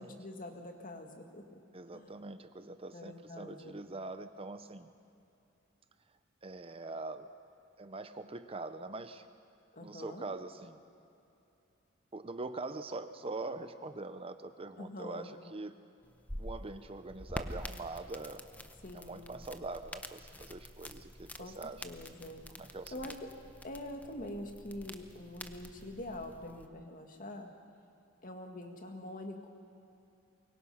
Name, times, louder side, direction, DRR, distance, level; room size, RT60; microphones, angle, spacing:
voice 1, 0.0-1.5 1.9-2.1 2.9-3.7 9.7-10.3 14.8-15.3 18.8-19.3 21.4-21.5 21.8-22.4 22.9-23.1 23.6-27.5 28.2-29.5, left 1 dB, 45° left, 3 dB, 2.1 m, -45 dB
voice 2, 1.7-4.9 6.4-7.3 7.8-9.3 9.8-10.8 12.1-15.8 16.4-18.4 18.9-21.8 22.6-23.1, right 3 dB, 30° right, 10 dB, 0.7 m, -43 dB
sound 1, 16.0-26.7, left 1 dB, 10° left, 0.8 m, -47 dB
23.5 x 23.5 x 5.7 m, 2.7 s
head